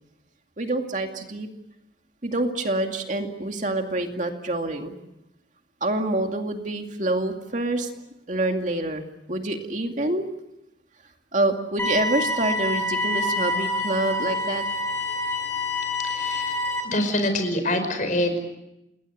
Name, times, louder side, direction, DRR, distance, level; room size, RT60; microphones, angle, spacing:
voice 1, 0.6-1.5 2.2-4.9 5.8-7.9 8.3-9.0 9.3-10.2 11.3-14.6, right 2 dB, 45° right, 4 dB, 2.4 m, -26 dB
sound 1, 11.8-16.8, left 2 dB, 15° left, 6.2 m, -27 dB
voice 2, 16.0-16.6 16.8-18.4, left 1 dB, 45° left, 7 dB, 5.3 m, -25 dB
28.5 x 20.5 x 8.2 m, 0.90 s
head